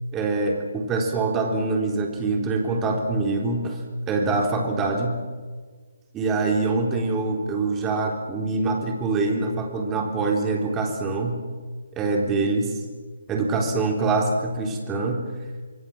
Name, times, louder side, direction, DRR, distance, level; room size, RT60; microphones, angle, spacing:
voice 1, 0.1-5.2 6.1-11.4 11.9-12.8 13.3-15.2, right 3 dB, 15° right, 1 dB, 3.8 m, -24 dB
26.0 x 23.0 x 7.4 m, 1.5 s
figure-of-eight pair, 140°, 0 cm